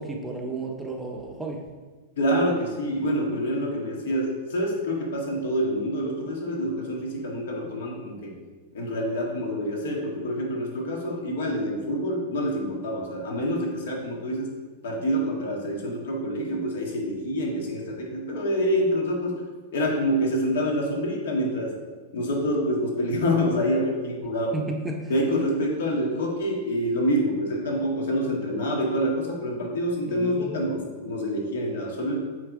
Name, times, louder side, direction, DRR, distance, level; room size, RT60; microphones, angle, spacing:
voice 1, 0.0-1.6 24.5-25.1 30.0-30.6, right 2 dB, 5° right, 1 dB, 0.6 m, -33 dB
voice 2, 2.2-8.3 8.7-14.5 14.8-19.4 19.7-21.7 22.1-24.6 25.1-32.2, equal, 80° left, 0 dB, 1.8 m, -27 dB
8.3 x 3.3 x 4.7 m, 1.4 s
supercardioid pair, 160°, 0 cm